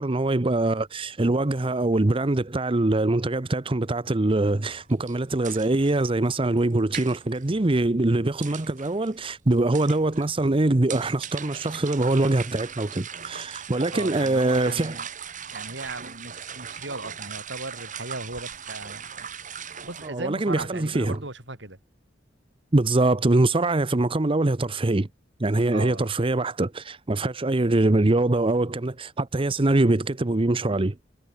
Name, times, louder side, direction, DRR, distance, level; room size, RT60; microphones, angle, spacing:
voice 1, 0.0-15.0 20.0-21.2 22.7-25.1 25.4-31.0, right 2 dB, 30° right, 0.8 m, -23 dB
sound 1, 4.6-20.1, right 7 dB, 45° right, 5.8 m, -40 dB
voice 2, 13.9-15.1 15.5-19.3 19.6-21.8 25.7-26.1, right 2 dB, 75° right, 7.1 m, -37 dB
head